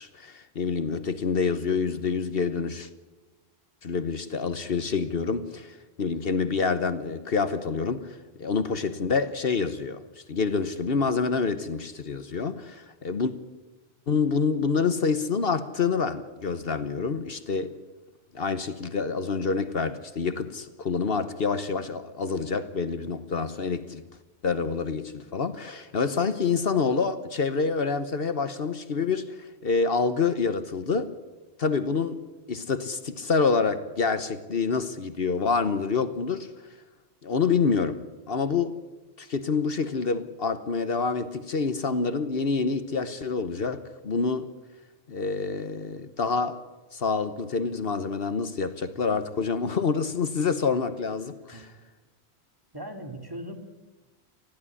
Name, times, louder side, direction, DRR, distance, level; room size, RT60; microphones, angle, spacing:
voice 1, 0.0-2.9 3.8-13.3 14.1-17.7 18.3-24.0 24.4-31.1 31.6-32.2 32.5-36.7 37.2-38.7 39.2-44.5 45.1-46.6 46.9-51.7, left 5 dB, 60° left, 1.2 m, -27 dB
voice 2, 52.7-53.5, right 1 dB, 20° right, 2.4 m, -38 dB
20.5 x 15.0 x 9.8 m
omnidirectional pair, 1.1 m